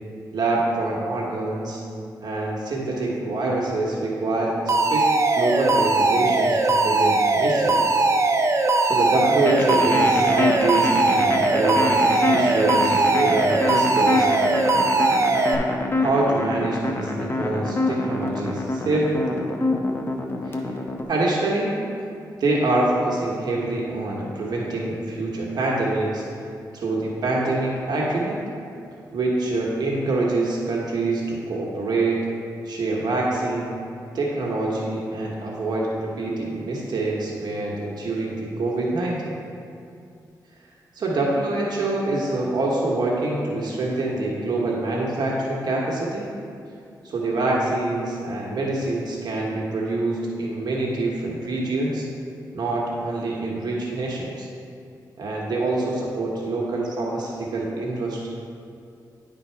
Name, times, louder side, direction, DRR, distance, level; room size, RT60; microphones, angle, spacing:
voice 1, 0.3-1.8 2.2-5.1 5.3-8.0 8.8-14.3 16.0-19.2 20.4-20.6 21.1-21.7 22.4-26.2 26.7-28.4 29.1-32.2 32.6-33.8 34.1-39.4 40.9-46.3 47.0-52.1 52.5-54.5 55.2-58.3, right 2 dB, 75° right, -3 dB, 1.1 m, -25 dB
Alarm, 4.7-15.5, right 2 dB, 40° right, 0.6 m, -20 dB
sound 1, 9.5-21.0, left 2 dB, 30° left, 0.8 m, -26 dB
10.0 x 3.9 x 4.5 m, 2.5 s
cardioid pair, 80°, 7 cm